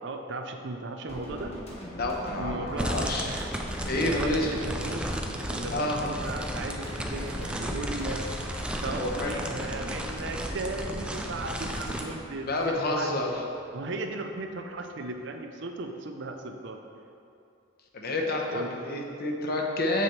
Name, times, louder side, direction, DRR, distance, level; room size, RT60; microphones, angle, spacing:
voice 1, 0.0-1.6 2.3-2.9 3.2-3.5 3.9-5.0 5.5-8.4 8.8-13.1 13.7-16.8 18.5-18.8, right 2 dB, 60° right, 5 dB, 0.5 m, -36 dB
sound 1, 1.1-13.3 13.5-13.7, equal, 30° left, 1.6 m, -40 dB
voice 2, 2.0-3.3 3.9-4.5 5.7-6.0 9.0-9.3 12.5-13.3 17.9-20.0, left 1 dB, 50° left, 0 dB, 0.9 m, -29 dB
sound 2, 2.8-12.0, right 1 dB, 5° right, 0.4 m, -34 dB
sound 3, 5.4-15.6 16.3-16.4, right 1 dB, 35° right, 0.9 m, -51 dB
7.3 x 6.9 x 3.2 m, 2.5 s
head